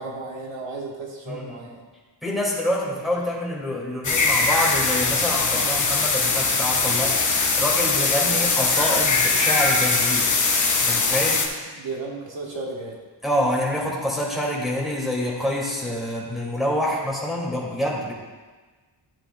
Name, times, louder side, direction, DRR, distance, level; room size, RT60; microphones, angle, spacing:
voice 1, 0.0-1.8 8.2-8.4 11.7-13.0, right 3 dB, 80° right, -1 dB, 1.4 m, -34 dB
voice 2, 1.3-1.6 2.2-10.3 10.8-11.4 13.2-18.1, left 1 dB, ahead, -5 dB, 2.1 m, -26 dB
sound 1, 4.0-11.5, left 4 dB, 45° left, 0.9 m, -21 dB
12.0 x 7.9 x 2.2 m, 1.4 s
wide cardioid pair, 125°, 44 cm